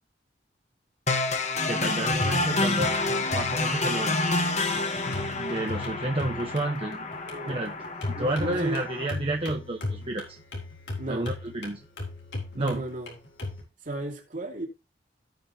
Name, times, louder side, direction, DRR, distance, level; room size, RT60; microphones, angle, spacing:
sound 1, 1.1-9.1, left 2 dB, 40° left, 1.4 m, -28 dB
voice 1, 1.7-2.9 3.3-4.3 5.4-7.1 7.5-7.8 8.1-10.4 11.1-11.8 12.6-12.8, right 1 dB, 30° right, 1.1 m, -30 dB
sound 2, 2.1-13.6, left 2 dB, 85° left, 3.8 m, -38 dB
voice 2, 7.3-7.6 8.1-8.8 11.0-11.3 12.5-13.2 13.8-14.7, right 1 dB, 50° right, 2.6 m, -34 dB
16.5 x 5.6 x 2.8 m
head